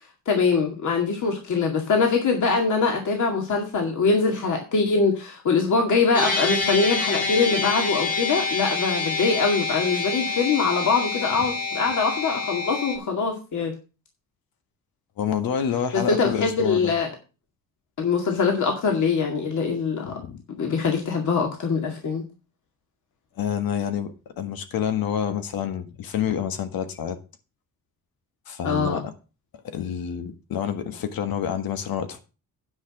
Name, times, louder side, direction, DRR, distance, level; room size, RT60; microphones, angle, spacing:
voice 1, 0.3-13.7 15.9-17.1 18.0-20.1 20.5-22.2 28.6-29.0, left 4 dB, 60° left, 2 dB, 2.2 m, -23 dB
sound 1, 6.1-13.0, left 4 dB, 25° left, 2.3 m, -27 dB
voice 2, 15.2-16.9 20.0-20.4 23.4-27.2 28.5-29.1 29.6-32.2, left 8 dB, 90° left, 9 dB, 1.6 m, -28 dB
9.7 x 6.0 x 6.0 m, 0.32 s
wide cardioid pair, 160°, 34 cm